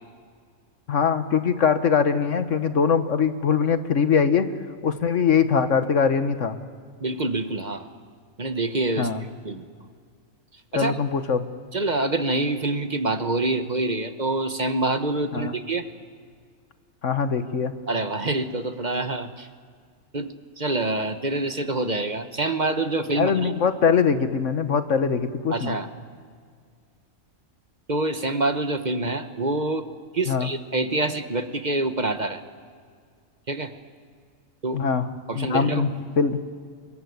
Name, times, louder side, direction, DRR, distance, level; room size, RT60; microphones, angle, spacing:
voice 1, 0.9-4.5 4.8-6.6 9.0-9.2 10.8-11.4 15.3-15.5 17.0-17.7 23.2-25.8 30.3-30.5 34.7-35.1 35.3-36.4, left 6 dB, 65° left, 10 dB, 1.6 m, -22 dB
voice 2, 7.0-7.9 8.4-9.1 9.4-9.6 10.7-10.9 11.7-15.9 17.9-19.5 20.1-23.5 25.5-25.9 27.9-29.8 30.1-32.4 33.5-33.7 34.6-34.8 35.3-35.9, right 2 dB, 35° right, 9 dB, 1.2 m, -26 dB
26.0 x 22.5 x 9.6 m, 2.1 s
omnidirectional pair, 1.4 m